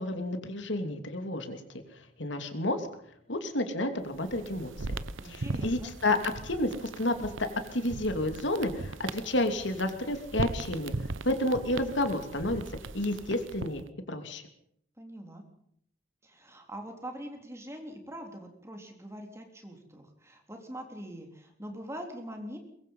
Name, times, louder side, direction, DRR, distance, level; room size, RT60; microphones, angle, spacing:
voice 1, 0.0-1.6 2.2-2.9 3.3-5.0 5.2-6.2 6.4-10.9 11.2-12.6 12.9-14.4, left 1 dB, 70° left, 7 dB, 2.8 m, -30 dB
sound 1, 4.1-13.9, right 3 dB, 85° right, 0.9 m, -39 dB
voice 2, 5.2-5.9 15.0-15.4 16.2-22.6, equal, 15° right, 4 dB, 3.8 m, -43 dB
23.5 x 22.5 x 5.6 m, 0.67 s
head